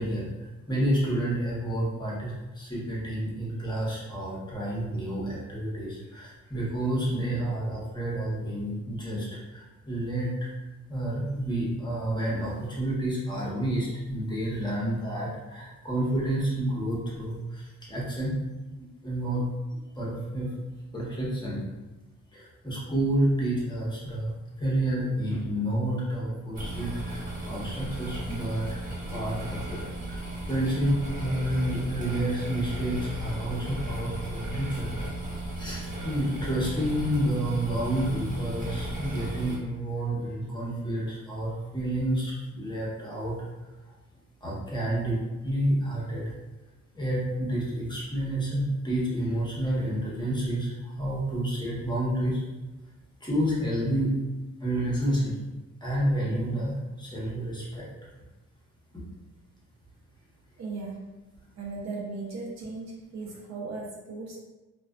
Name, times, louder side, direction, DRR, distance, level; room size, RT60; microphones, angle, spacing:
voice 1, 0.0-10.5 10.9-18.4 19.0-19.5 19.9-20.5 20.9-21.6 22.3-24.3 24.6-28.8 29.1-34.9 35.6-43.4 44.4-46.2 46.9-52.4 53.2-54.1 54.6-55.4 55.8-57.9, right 1 dB, 15° left, -6 dB, 0.9 m, -29 dB
sound 1, 26.5-39.5, right 1 dB, 25° right, 1.2 m, -35 dB
voice 2, 60.6-61.1 61.5-64.4, right 3 dB, 60° right, -3 dB, 0.7 m, -37 dB
2.3 x 2.2 x 2.4 m, 1.1 s
cardioid pair, 90°, 30 cm